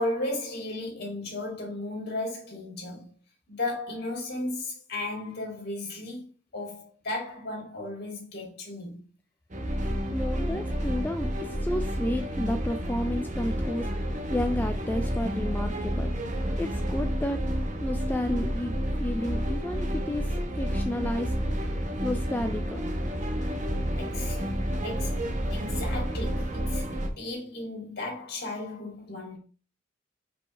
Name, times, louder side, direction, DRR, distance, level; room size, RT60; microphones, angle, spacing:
voice 1, 0.0-3.1 3.5-6.3 6.5-9.0 10.2-11.4 24.0-29.4, left 2 dB, 55° left, 2.8 m, -35 dB
sound 1, 9.5-27.1, equal, 40° right, 1.1 m, -30 dB
voice 2, 9.8-13.9 14.3-16.2 16.6-17.4 17.8-21.3 22.0-22.9, left 1 dB, 10° left, 0.3 m, -32 dB
5.4 x 5.3 x 3.3 m
head